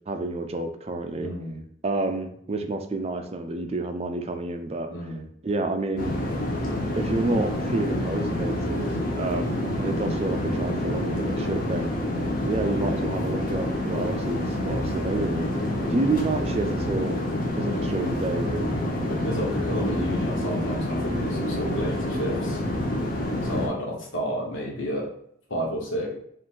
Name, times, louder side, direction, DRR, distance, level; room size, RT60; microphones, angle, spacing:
voice 1, 0.1-1.3 1.8-4.9 5.4-6.1 7.0-8.9 9.2-12.0 12.4-15.5 15.9-17.1 17.6-18.8, right 2 dB, 30° right, 6 dB, 0.4 m, -29 dB
voice 2, 1.2-1.6 4.9-5.2 12.8-13.1 15.3-15.5 19.1-22.6 23.4-25.1 25.5-26.2, equal, 90° left, -2 dB, 1.3 m, -31 dB
sound 1, 6.0-23.7, left 1 dB, 45° left, 0.9 m, -27 dB
4.9 x 2.5 x 3.7 m, 0.68 s
head